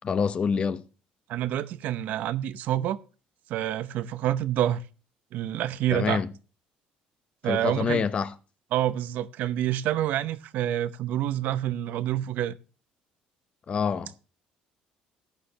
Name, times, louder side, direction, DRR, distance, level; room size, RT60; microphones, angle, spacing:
voice 1, 0.0-0.8 5.9-6.3 7.5-8.3 13.7-14.1, left 6 dB, 40° left, 0.9 m, -26 dB
voice 2, 1.3-3.0 3.5-4.8 5.3-6.2 7.4-8.0 8.7-12.6, right 12 dB, 70° right, 0.8 m, -27 dB
14.5 x 9.5 x 2.9 m
cardioid pair, 105°, 3 cm